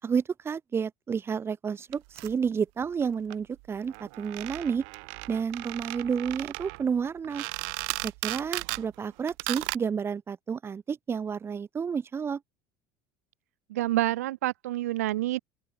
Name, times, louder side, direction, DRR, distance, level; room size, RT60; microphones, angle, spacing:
voice 1, 0.0-4.8 5.3-7.4 8.0-12.4, right 6 dB, 30° right, 5.8 m, -30 dB
sound 1, 1.9-2.3 3.0-3.1 3.3-3.4 3.6-3.7 3.9-8.9 9.3-9.8, right 40 dB or more, 75° right, 1.8 m, -36 dB
voice 2, 13.7-15.4, right 16 dB, 90° right, 2.9 m, -28 dB
open air
supercardioid pair, 90°, 8 cm